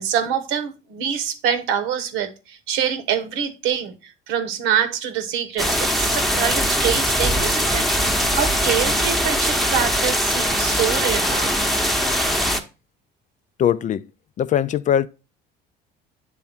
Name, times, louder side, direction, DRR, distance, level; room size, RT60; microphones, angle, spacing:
voice 1, 0.0-11.6, right 8 dB, 75° right, 1.1 m, -25 dB
sound 1, 5.6-12.6, equal, ahead, 0.9 m, -21 dB
voice 2, 13.6-14.1 14.4-15.1, left 9 dB, 35° left, 0.4 m, -20 dB
8.3 x 3.5 x 4.2 m
supercardioid pair, 80°, 21 cm